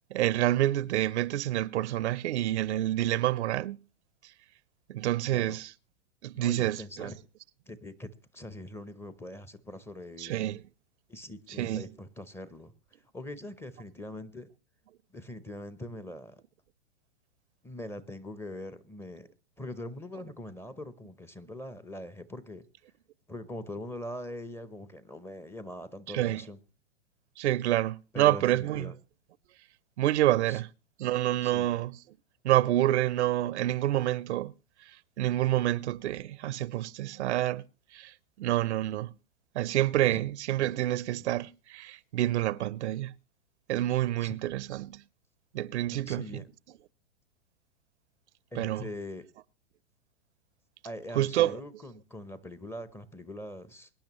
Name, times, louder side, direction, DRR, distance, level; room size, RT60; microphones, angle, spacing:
voice 1, 0.1-3.8 4.9-5.7 6.2-7.1 10.2-10.6 11.6-11.8 26.1-26.4 27.4-28.9 30.0-30.7 31.0-32.0 32.4-34.5 35.2-37.6 37.9-39.1 39.5-43.1 43.7-45.0 45.5-46.4 48.6-48.9 51.1-51.6, right 14 dB, 70° right, 0.6 m, -28 dB
voice 2, 6.3-7.2 7.7-10.3 11.1-12.7 13.1-14.5 15.1-16.4 17.6-19.3 19.6-22.7 23.3-26.6 28.1-29.0 30.5-30.6 31.4-31.8 40.1-40.2 41.2-41.3 44.2-44.4 46.0-46.4 48.5-49.3 50.8-53.9, left 1 dB, 5° left, 0.7 m, -42 dB
24.0 x 10.5 x 3.0 m
hypercardioid pair, 115°, 35 cm